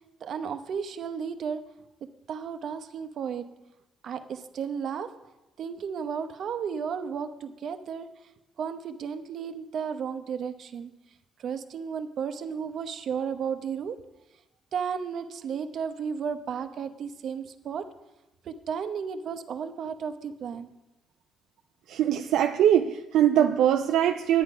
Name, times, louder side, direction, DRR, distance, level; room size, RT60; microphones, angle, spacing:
voice 1, 0.2-1.6 2.3-3.5 4.0-5.1 5.6-8.1 8.6-10.9 11.4-14.0 14.7-17.9 18.4-20.7, right 7 dB, 65° right, 9 dB, 0.9 m, -33 dB
voice 2, 21.9-24.4, right 10 dB, 85° right, 5 dB, 0.5 m, -22 dB
10.0 x 9.4 x 5.5 m, 0.95 s
cardioid pair, 90°, 0 cm